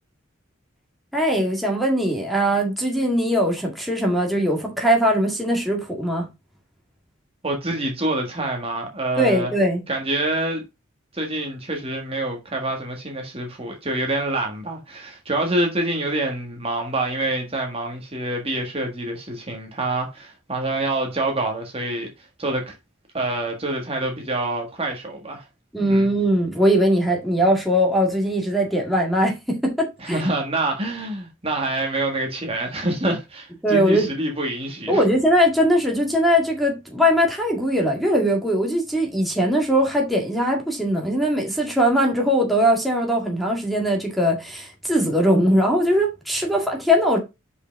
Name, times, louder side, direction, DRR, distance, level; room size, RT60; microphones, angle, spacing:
voice 1, 1.1-6.3 9.2-9.8 25.7-30.2 33.6-34.1 34.9-47.2, equal, ahead, 1.8 m, -20 dB
voice 2, 7.4-9.5 9.9-10.6 11.1-22.1 22.4-22.7 23.1-25.4 25.8-26.1 30.0-35.0, right 2 dB, 30° right, 1.5 m, -26 dB
5.4 x 4.9 x 5.1 m
head